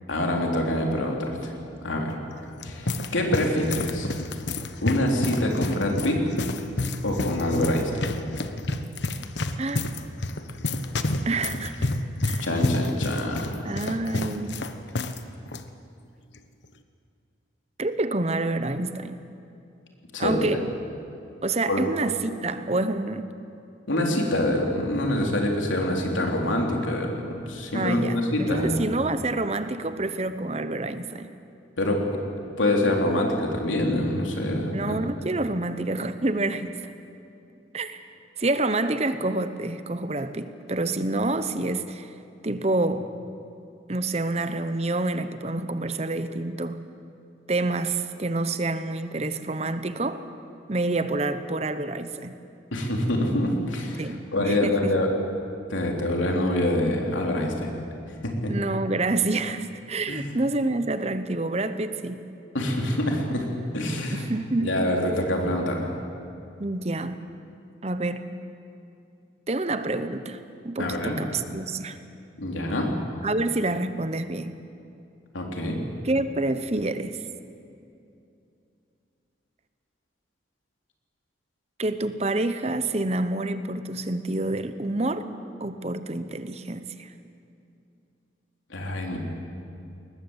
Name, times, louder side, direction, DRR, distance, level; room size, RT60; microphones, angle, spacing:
voice 1, 0.1-1.5 1.8-2.2 2.6-4.1 4.8-6.2 7.0-8.1 12.4-13.6 20.1-20.6 21.7-21.8 23.9-27.2 27.5-28.8 31.8-32.1 32.6-35.0 52.7-54.0 54.3-55.1 55.7-57.7 58.2-58.5 60.1-60.2 62.5-63.5 63.7-64.2 64.6-65.9 70.8-71.2 72.4-72.9 75.3-75.8 88.7-89.2, left 1 dB, 85° left, 1 dB, 3.6 m, -25 dB
sound 1, 2.3-15.2 15.5-15.6 16.3-16.6, left 2 dB, 70° left, 1.1 m, -30 dB
voice 2, 11.3-11.9 12.2-12.5 13.6-14.6 17.8-19.2 20.2-20.6 21.4-23.3 27.7-31.4 34.7-36.9 37.7-38.0 38.4-42.1 42.4-43.1 43.9-46.8 47.5-50.2 50.7-52.3 54.0-55.0 58.5-62.2 64.1-64.9 66.6-67.2 67.8-68.3 69.5-72.0 73.2-74.6 76.0-77.2 81.8-85.3 85.6-87.1, right 2 dB, 35° right, 11 dB, 0.9 m, -28 dB
21.5 x 19.5 x 8.1 m, 2.7 s
head